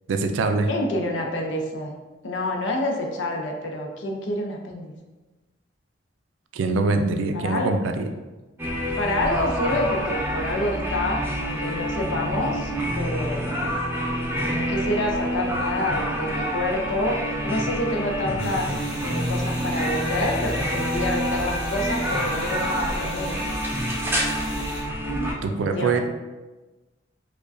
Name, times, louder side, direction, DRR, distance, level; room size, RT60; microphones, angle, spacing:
voice 1, 0.1-0.7 6.5-8.1 25.4-26.0, right 3 dB, 90° right, 6 dB, 0.4 m, -23 dB
voice 2, 0.7-2.0 2.2-4.9 7.3-7.7 9.0-13.5 14.4-18.7 19.0-23.4 25.4-26.0, left 1 dB, 75° left, 1 dB, 0.6 m, -28 dB
sound 1, 8.6-25.3, equal, 10° right, 0.4 m, -27 dB
sound 2, 18.4-24.8, equal, 15° left, 1.1 m, -40 dB
4.7 x 2.2 x 2.6 m, 1.2 s
head